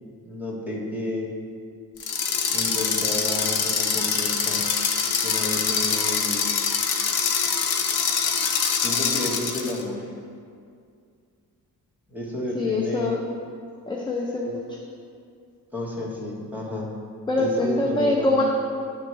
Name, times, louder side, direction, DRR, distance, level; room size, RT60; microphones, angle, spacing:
voice 1, 0.2-1.3 2.5-4.6 5.2-6.5 8.8-10.1 12.1-13.2 15.7-16.9 17.4-18.4, left 2 dB, 5° right, -5 dB, 0.9 m, -31 dB
sound 1, 2.0-9.8, left 6 dB, 90° left, 0.7 m, -24 dB
voice 2, 12.5-13.2 13.9-14.8 17.3-18.4, left 2 dB, 15° left, -2 dB, 0.3 m, -24 dB
10.0 x 3.4 x 3.1 m, 2.3 s
wide cardioid pair, 175°, 36 cm